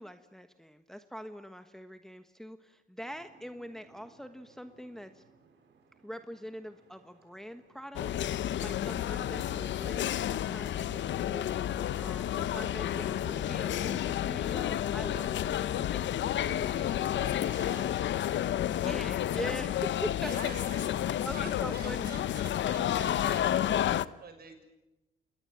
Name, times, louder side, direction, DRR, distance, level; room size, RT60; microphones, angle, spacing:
voice 1, 0.0-5.2 6.0-8.1 8.3-17.0 18.8-20.5 21.2-22.2, equal, ahead, 8 dB, 1.3 m, -43 dB
Boat Water vehicle, 3.0-8.1, right 5 dB, 70° right, 5.9 m, -63 dB
sound 1, 7.9-24.0, left 11 dB, 65° left, 0.8 m, -31 dB
voice 2, 11.6-12.1 12.9-13.3 16.4-18.0 20.2-24.6, right 5 dB, 50° right, 6 dB, 6.7 m, -49 dB
28.0 x 20.5 x 9.0 m, 1.0 s
cardioid pair, 90°, 20 cm